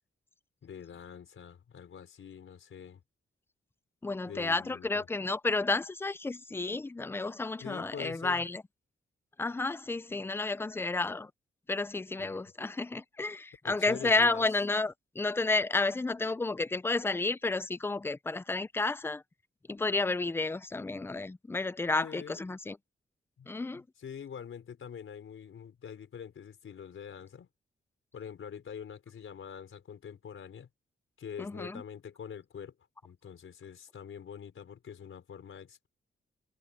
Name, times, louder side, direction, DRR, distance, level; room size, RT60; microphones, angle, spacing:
voice 1, 0.6-3.0 4.3-5.1 7.6-8.5 12.2-12.4 13.6-14.4 22.0-22.4 23.4-27.5 28.1-30.7 31.2-32.8 33.0-35.9, left 7 dB, 75° left, 4.5 m, -45 dB
voice 2, 4.0-8.6 9.4-11.3 11.7-19.2 19.7-22.8 23.5-23.8 31.4-31.8, left 3 dB, 10° left, 0.4 m, -31 dB
wide cardioid pair, 155°, 21 cm